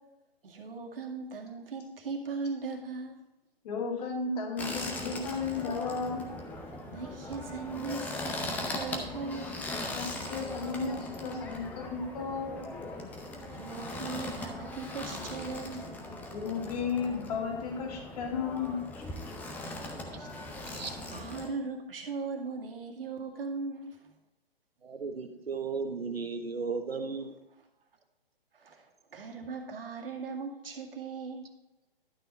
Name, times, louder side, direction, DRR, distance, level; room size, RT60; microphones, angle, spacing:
voice 1, 0.4-3.2 6.9-9.6 12.9-13.2 13.5-15.9 19.8-24.1 28.5-31.5, right 4 dB, 65° right, 1 dB, 2.0 m, -39 dB
voice 2, 3.6-6.3 9.9-12.6 16.3-19.0, left 5 dB, 40° left, 1 dB, 2.3 m, -34 dB
sound 1, 4.6-21.5, left 2 dB, 5° left, 0.6 m, -39 dB
voice 3, 24.8-27.4, right 4 dB, 80° right, 7 dB, 1.4 m, -35 dB
11.5 x 5.9 x 4.2 m, 0.98 s
figure-of-eight pair, 140°, 30 cm